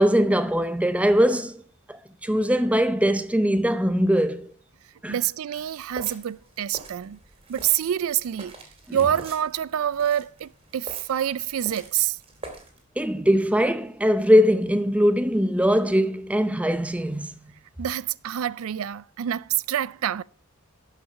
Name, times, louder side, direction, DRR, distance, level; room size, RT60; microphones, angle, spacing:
voice 1, 0.0-1.6 2.2-4.5 5.0-5.1 8.9-9.0 13.0-17.3, equal, 5° right, 0.6 m, -21 dB
voice 2, 5.1-7.2 7.5-8.6 8.9-12.2 17.8-20.2, right 10 dB, 75° right, 0.4 m, -26 dB
sound 1, 5.6-12.8, right 2 dB, 25° right, 2.6 m, -45 dB
12.0 x 5.8 x 5.8 m
head